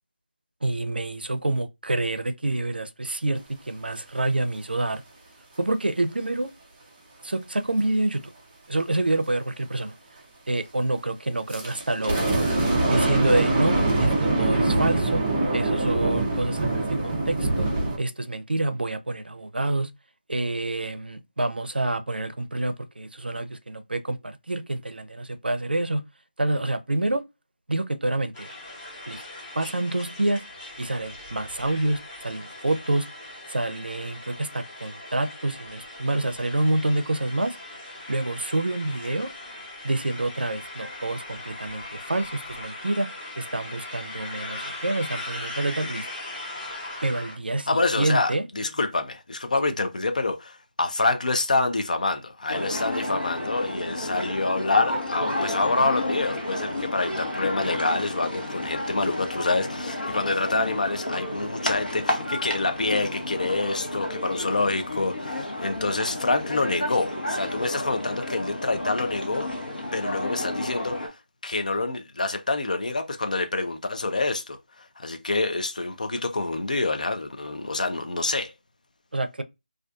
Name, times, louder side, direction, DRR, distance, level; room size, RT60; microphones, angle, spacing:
voice 1, 0.6-3.4 3.7-5.0 5.6-6.5 7.2-8.3 8.7-9.9 10.5-12.5 12.9-14.1 14.4-15.2 15.5-17.7 18.0-19.9 20.3-26.0 26.4-27.2 27.7-28.5 29.1-29.2 29.5-30.4 30.8-33.1 33.5-37.6 38.1-39.3 39.8-43.1 43.4-46.1 47.0-48.4 49.6-49.7 79.1-79.4, right 2 dB, 80° right, 0.5 m, -27 dB
sound 1, 11.5-18.0, right 2 dB, 10° right, 0.3 m, -23 dB
sound 2, 28.3-47.4, left 2 dB, 15° left, 0.8 m, -39 dB
voice 2, 47.7-69.5 69.9-71.1 71.4-74.6 75.0-78.5, left 3 dB, 50° left, 0.4 m, -26 dB
sound 3, 52.5-71.1, left 1 dB, 70° left, 0.9 m, -31 dB
2.4 x 2.3 x 2.4 m
figure-of-eight pair, 165°, 5 cm